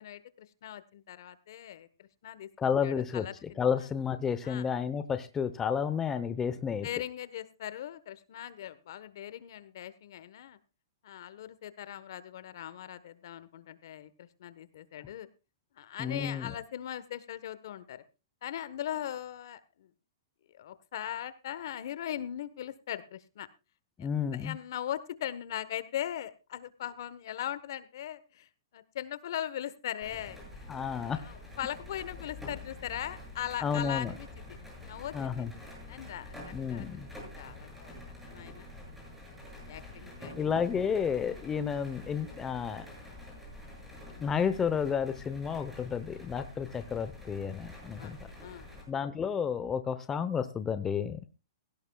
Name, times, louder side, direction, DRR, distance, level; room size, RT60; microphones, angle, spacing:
voice 1, 0.0-2.5 2.8-3.6 4.4-4.7 6.8-10.6 11.0-15.3 15.8-18.0 18.4-19.9 20.5-23.5 24.0-30.7 31.1-35.5 35.9-36.9 37.2-37.9 38.3-38.7 39.7-40.5 48.0-48.1 48.4-48.9, left 11 dB, 65° left, 1.3 m, -40 dB
voice 2, 2.6-6.9 16.0-16.5 24.0-24.6 30.7-31.2 33.6-34.1 35.1-35.5 36.5-37.1 40.4-42.9 44.2-48.3 48.9-51.2, left 7 dB, 15° left, 0.9 m, -31 dB
sound 1, 30.0-48.8, left 2 dB, 5° right, 7.9 m, -47 dB
17.0 x 16.0 x 2.4 m
hypercardioid pair, 140°, 2 cm